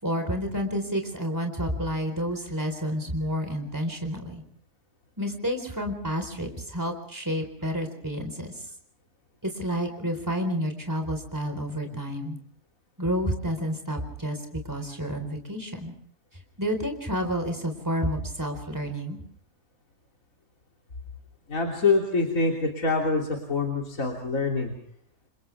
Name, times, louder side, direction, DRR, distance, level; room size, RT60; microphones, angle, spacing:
voice 1, 0.0-4.4 5.2-8.7 9.4-12.4 13.0-15.9 16.6-19.2, equal, 10° right, 5 dB, 4.3 m, -30 dB
voice 2, 21.5-24.7, left 3 dB, 60° left, 0 dB, 3.6 m, -25 dB
30.0 x 27.5 x 3.5 m, 0.63 s
omnidirectional pair, 1.6 m